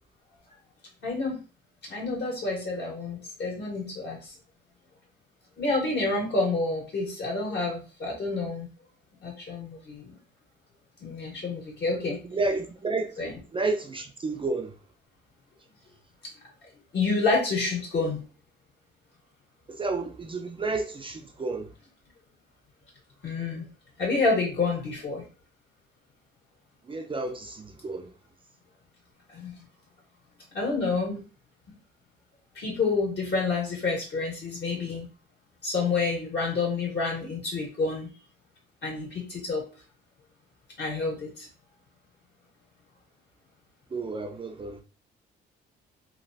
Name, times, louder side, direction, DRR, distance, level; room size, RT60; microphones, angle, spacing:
voice 1, 1.0-1.4 1.8-4.3 5.6-8.7 9.2-10.2 11.0-12.2 13.2-13.3 16.9-18.2 23.2-23.6 24.0-25.2 29.3-29.5 30.5-31.2 32.6-35.1 35.6-38.1 38.8-39.7 40.8-41.5, left 3 dB, 60° left, 1.7 m, -28 dB
voice 2, 12.3-14.7 19.7-21.7 26.9-28.1 43.9-44.8, right 3 dB, 25° right, 0.4 m, -31 dB
3.0 x 2.5 x 2.7 m
cardioid pair, 90°, 20 cm